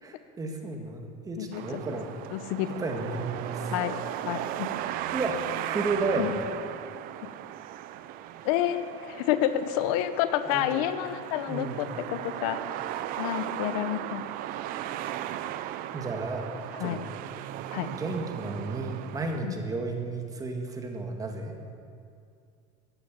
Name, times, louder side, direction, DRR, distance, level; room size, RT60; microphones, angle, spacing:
voice 1, 0.0-2.1 2.8-3.7 5.1-6.5 10.5-10.9 11.5-11.8 15.9-16.5 16.8-17.0 17.9-21.5, right 3 dB, 20° right, 3 dB, 1.8 m, -32 dB
sound 1, 1.5-19.4, right 12 dB, 50° right, 0.7 m, -37 dB
voice 2, 2.3-2.8 3.7-3.9 4.2-4.7 6.2-6.3 8.4-12.6 13.2-14.2 16.8-17.0 17.7-17.9 19.4-19.6, left 12 dB, 75° left, 12 dB, 0.9 m, -29 dB
15.0 x 9.9 x 8.2 m, 2.3 s
supercardioid pair, 135°, 19 cm